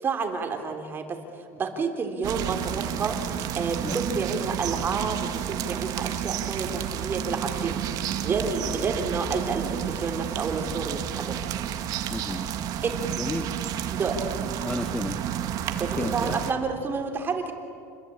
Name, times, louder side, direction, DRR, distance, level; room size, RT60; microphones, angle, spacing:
voice 1, 0.0-7.8 8.2-11.5 12.8-13.0 13.9-14.2 15.8-17.5, right 4 dB, 25° right, 5 dB, 3.5 m, -30 dB
sound 1, 2.2-16.5, right 10 dB, 50° right, 2.0 m, -31 dB
voice 2, 12.1-12.4 13.2-13.5 14.6-15.2 16.0-16.4, left 2 dB, 10° left, 7 dB, 1.1 m, -32 dB
30.0 x 22.0 x 8.8 m, 2.4 s
cardioid pair, 140°, 8 cm